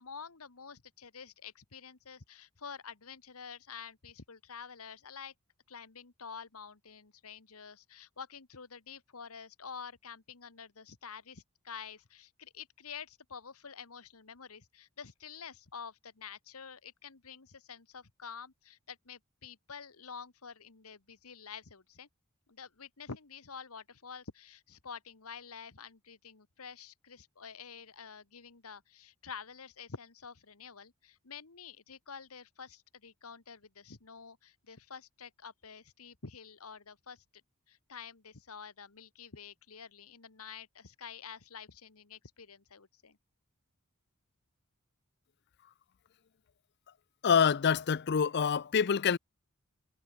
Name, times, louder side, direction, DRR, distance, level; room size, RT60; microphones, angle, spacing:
voice 1, 0.0-5.3 5.7-22.1 22.5-37.2 37.7-43.2, left 6 dB, 80° left, 1.5 m, -48 dB
voice 2, 47.2-49.2, left 6 dB, 50° left, 0.5 m, -26 dB
head